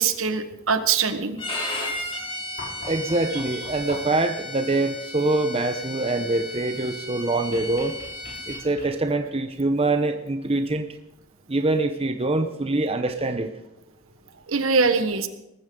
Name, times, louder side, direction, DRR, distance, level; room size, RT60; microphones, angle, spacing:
voice 1, 0.0-1.4 14.5-15.3, right 5 dB, 75° right, 9 dB, 1.3 m, -22 dB
Bowed string instrument, 1.4-8.6, left 1 dB, 25° left, 3.1 m, -34 dB
sound 1, 2.6-4.3 7.5-9.3 10.8-10.9, left 2 dB, 55° left, 6.4 m, -42 dB
voice 2, 2.8-7.9 8.5-10.9 11.5-13.5, right 2 dB, 30° right, 7 dB, 0.8 m, -24 dB
19.0 x 14.5 x 3.8 m, 0.90 s
head